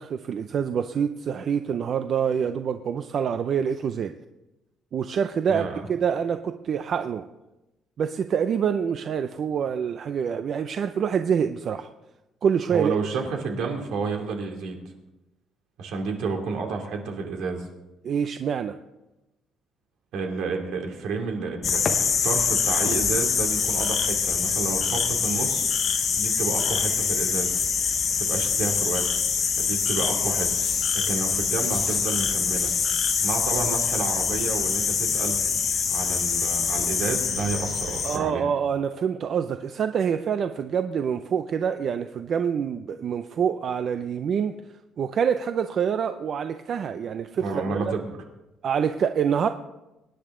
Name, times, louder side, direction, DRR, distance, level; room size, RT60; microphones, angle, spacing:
voice 1, 0.0-4.1 4.9-7.2 8.0-11.9 12.4-13.0 18.0-18.8 38.0-44.5 45.0-47.9 48.6-49.5, right 7 dB, 40° right, 9 dB, 0.5 m, -26 dB
voice 2, 5.5-5.9 12.7-14.8 15.8-17.7 20.1-25.7 26.2-27.6 28.2-29.1 29.6-30.5 30.9-32.7 33.1-35.4 35.9-38.5 47.4-48.0, right 4 dB, 65° right, 2 dB, 2.7 m, -30 dB
sound 1, 21.6-38.2, left 6 dB, 35° left, 1.2 m, -25 dB
24.5 x 10.0 x 3.8 m, 1.0 s
cardioid pair, 175°, 0 cm